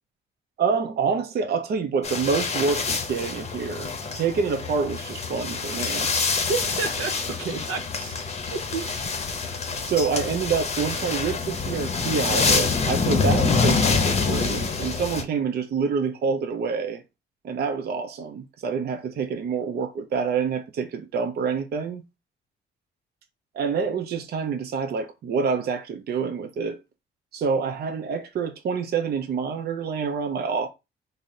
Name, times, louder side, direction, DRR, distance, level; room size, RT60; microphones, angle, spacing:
voice 1, 0.6-6.1 9.8-17.0 17.4-22.0 23.5-26.8 27.3-30.7, right 5 dB, 55° right, 0.6 m, -27 dB
sound 1, 2.0-15.2, left 4 dB, 35° left, 0.7 m, -26 dB
voice 2, 6.3-8.2 8.5-9.2, right 4 dB, 85° right, 0.8 m, -31 dB
4.0 x 2.1 x 3.7 m
cardioid pair, 90°, 20 cm